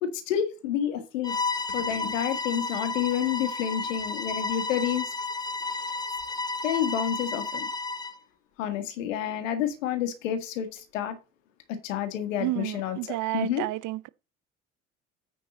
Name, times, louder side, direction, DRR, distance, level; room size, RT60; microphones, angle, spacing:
voice 1, 0.0-1.4 1.7-5.1 6.6-7.7 8.6-11.1 11.7-13.6, left 9 dB, 75° left, 1.8 m, -29 dB
Bowed string instrument, 1.2-8.2, left 3 dB, 10° left, 0.7 m, -32 dB
voice 2, 12.4-14.1, right 18 dB, 50° right, 0.7 m, -31 dB
9.3 x 5.3 x 4.1 m
figure-of-eight pair, 55°, 39 cm